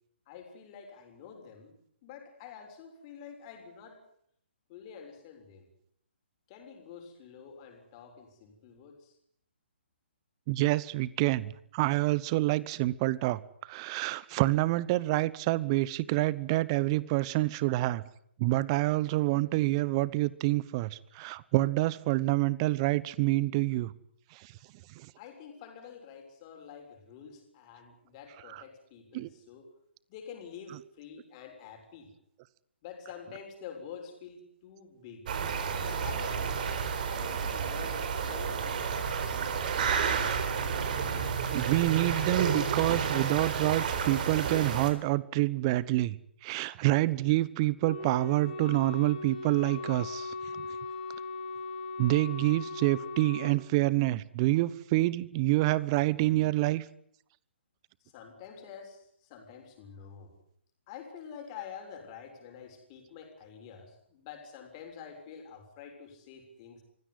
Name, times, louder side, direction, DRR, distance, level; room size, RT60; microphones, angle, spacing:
voice 1, 0.3-1.7 2.0-4.0 4.7-5.7 6.5-9.1 25.2-29.7 30.1-32.1 32.8-35.3 35.8-38.0 38.2-39.5 58.0-60.3 60.9-66.8, left 7 dB, 30° left, 6.8 m, -48 dB
voice 2, 10.5-13.4 13.7-18.0 18.4-20.9 21.2-23.9 29.1-29.3 41.5-46.2 46.4-50.3 52.0-56.8, right 18 dB, 30° right, 1.0 m, -27 dB
sound 1, 35.3-44.9, right 6 dB, 45° right, 4.1 m, -31 dB
Wind instrument woodwind instrument, 47.8-53.6, left 3 dB, 45° left, 4.8 m, -38 dB
24.5 x 16.5 x 9.8 m
figure-of-eight pair, 135°, 6 cm